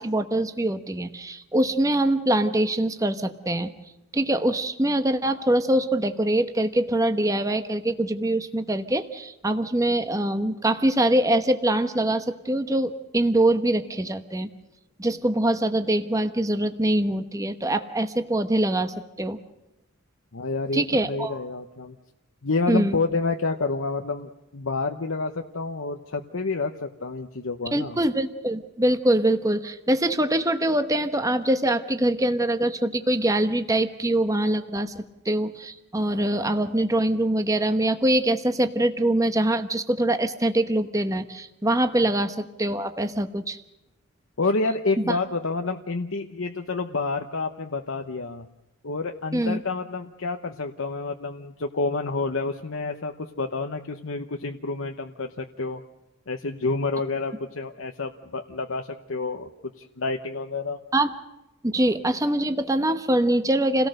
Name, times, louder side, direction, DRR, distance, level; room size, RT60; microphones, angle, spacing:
voice 1, 0.0-3.7 4.1-14.5 15.0-19.4 20.7-21.4 22.7-23.0 27.7-34.9 35.2-43.6 45.1-45.2 49.3-49.6 60.9-61.1 61.6-63.9, right 1 dB, 15° right, 8 dB, 1.0 m, -23 dB
voice 2, 20.3-22.0 22.4-28.0 44.4-48.5 48.8-55.8 56.3-59.5 59.8-60.8, left 3 dB, 65° left, 4 dB, 1.0 m, -29 dB
28.5 x 17.5 x 6.5 m, 0.95 s
head